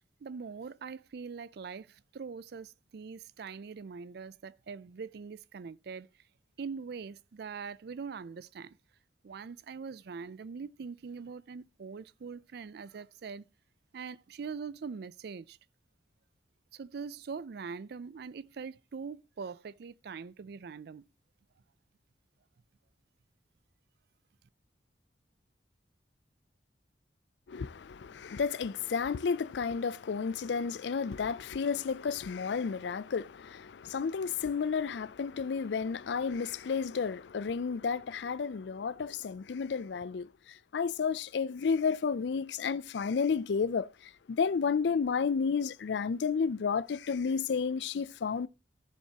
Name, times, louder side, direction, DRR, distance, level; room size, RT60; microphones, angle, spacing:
voice 1, 0.2-6.1 6.6-8.8 9.2-13.4 13.9-15.6 16.7-21.0, right 5 dB, 60° right, 0.4 m, -42 dB
voice 2, 27.5-40.3 40.7-43.9 44.3-48.5, left 5 dB, 70° left, 0.4 m, -31 dB
14.0 x 7.3 x 2.9 m
head